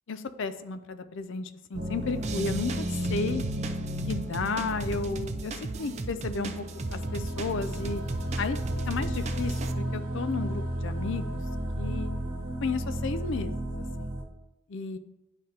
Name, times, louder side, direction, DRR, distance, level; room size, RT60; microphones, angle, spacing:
voice 1, 0.1-3.4 4.1-6.6 6.9-8.0 8.4-8.6 8.9-11.4 11.8-12.1 12.6-14.1 14.7-15.0, left 4 dB, 55° left, 11 dB, 0.4 m, -33 dB
sound 1, 1.7-14.2, right 1 dB, 80° right, 1.1 m, -33 dB
Energetic Bigbeat Drum Loop, 2.2-9.7, right 3 dB, 30° right, 0.3 m, -37 dB
10.5 x 5.0 x 2.9 m, 0.95 s
head